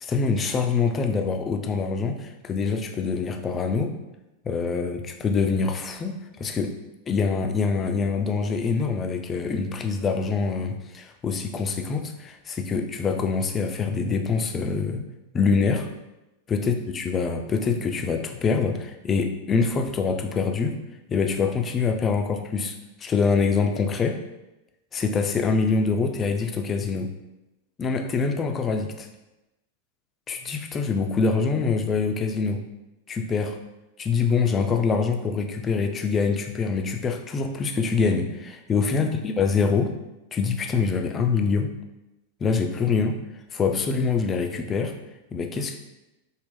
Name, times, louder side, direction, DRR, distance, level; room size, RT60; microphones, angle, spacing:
voice 1, 0.0-3.9 4.4-6.7 7.1-15.0 15.3-15.9 16.5-20.8 21.1-22.7 23.0-24.2 24.9-27.1 27.8-29.1 30.3-32.6 33.1-33.6 34.0-39.9 40.3-41.7 42.4-43.2 43.5-44.9 45.3-45.8, left 5 dB, 25° left, 5 dB, 0.4 m, -25 dB
3.5 x 2.1 x 3.6 m, 0.97 s
figure-of-eight pair, 90°, 0 cm